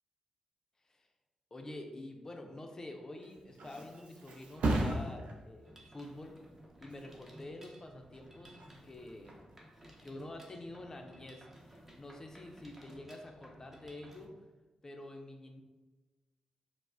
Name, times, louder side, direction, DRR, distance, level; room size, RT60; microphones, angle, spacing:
voice 1, 1.5-6.4 6.8-9.5 10.0-14.3 14.8-15.6, left 1 dB, 25° left, 3 dB, 0.4 m, -48 dB
Thump thud, 3.0-10.5 10.9-11.3, right 2 dB, 90° right, 0.5 m, -39 dB
Mechanisms, 5.6-14.3, equal, 15° right, 0.6 m, -57 dB
4.6 x 2.0 x 2.5 m, 1.2 s
cardioid pair, 95°, 2 cm